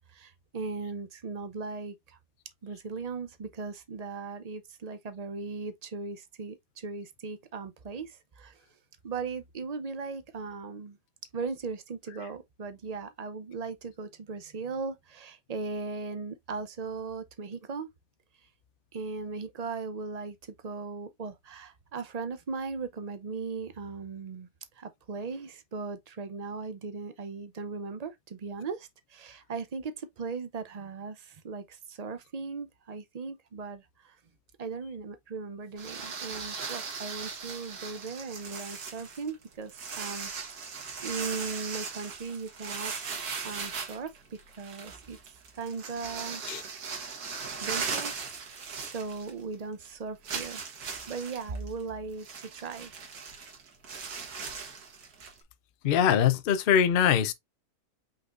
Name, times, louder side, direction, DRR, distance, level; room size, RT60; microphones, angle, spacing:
voice 1, 0.1-2.2 2.6-8.6 9.0-11.0 11.3-17.9 18.9-24.5 24.8-34.2 34.6-40.3 40.7-46.4 47.6-52.9, right 4 dB, 55° right, 0.4 m, -38 dB
sound 1, 35.8-49.5 49.8-49.9 50.2-55.4, right 5 dB, 75° right, 1.8 m, -38 dB
voice 2, 55.8-57.3, left 9 dB, 65° left, 0.5 m, -23 dB
5.3 x 4.1 x 2.4 m
omnidirectional pair, 1.7 m